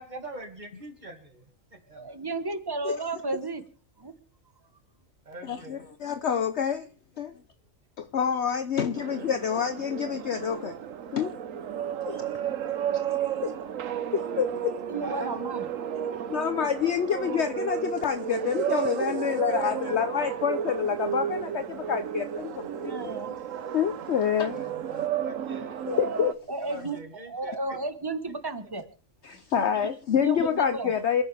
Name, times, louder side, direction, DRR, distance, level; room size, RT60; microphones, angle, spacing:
voice 1, 0.0-1.4 1.7-2.2 5.2-6.0 9.0-9.1 10.1-10.2 11.0-11.2 12.4-12.8 15.0-15.4 19.1-20.0 23.0-23.2 24.5-25.8 26.6-27.8, right 2 dB, 35° right, 2.6 m, -43 dB
voice 2, 1.9-3.6 4.0-4.1 14.9-15.6 22.9-23.4 26.5-27.0 27.3-28.9 29.6-29.7 30.2-30.9, right 2 dB, 20° right, 1.3 m, -33 dB
voice 3, 5.5-6.9 7.2-7.4 8.0-10.7 11.1-11.3 12.0-12.3 13.1-13.5 14.1-14.8 16.3-23.4 23.7-24.6 25.9-26.4 29.2-31.2, left 8 dB, 60° left, 1.1 m, -28 dB
sound 1, 8.9-26.3, right 9 dB, 75° right, 1.2 m, -33 dB
28.0 x 10.0 x 3.4 m
omnidirectional pair, 1.4 m